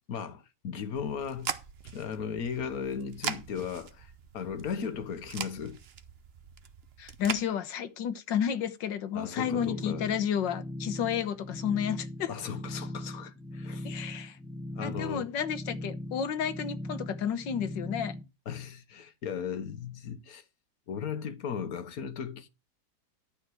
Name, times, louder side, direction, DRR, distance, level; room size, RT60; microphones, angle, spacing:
voice 1, 0.1-1.5 1.8-5.8 9.1-10.1 12.3-13.9 14.8-15.3 18.5-20.4 20.9-22.5, left 7 dB, 55° left, 1.5 m, -36 dB
sound 1, 0.9-7.4, right 7 dB, 45° right, 0.8 m, -41 dB
voice 2, 7.0-12.3 13.8-14.4 14.8-18.1, left 8 dB, 85° left, 1.8 m, -31 dB
sound 2, 9.4-18.2, left 1 dB, ahead, 0.8 m, -39 dB
12.0 x 4.4 x 7.6 m
omnidirectional pair, 1.9 m